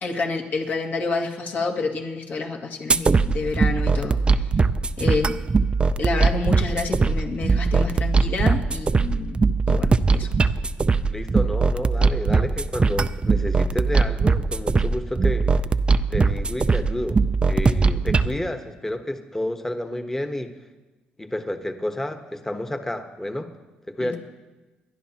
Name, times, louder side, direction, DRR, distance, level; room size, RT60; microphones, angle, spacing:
voice 1, 0.0-4.5 5.0-5.3 6.0-9.4 9.7-10.3 24.0-24.2, left 3 dB, 55° left, 0 dB, 2.0 m, -28 dB
sound 1, 2.9-18.3, right 4 dB, 30° right, 0.5 m, -21 dB
voice 2, 11.1-15.5 16.1-17.2 17.5-20.5 21.2-23.5 23.9-24.2, left 1 dB, 10° left, 6 dB, 1.2 m, -30 dB
28.5 x 11.5 x 2.9 m, 1.2 s
cardioid pair, 85°, 4 cm